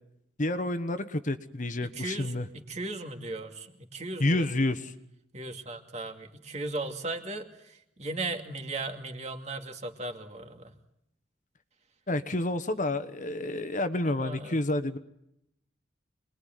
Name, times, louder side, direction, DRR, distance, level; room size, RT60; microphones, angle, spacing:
voice 1, 0.4-2.5 4.2-4.9 12.1-15.0, left 1 dB, 45° left, 11 dB, 1.2 m, -29 dB
voice 2, 1.8-4.5 5.3-10.7 12.9-13.0 14.1-14.6, right 2 dB, 35° right, 5 dB, 2.5 m, -37 dB
26.5 x 21.5 x 9.3 m, 0.81 s
head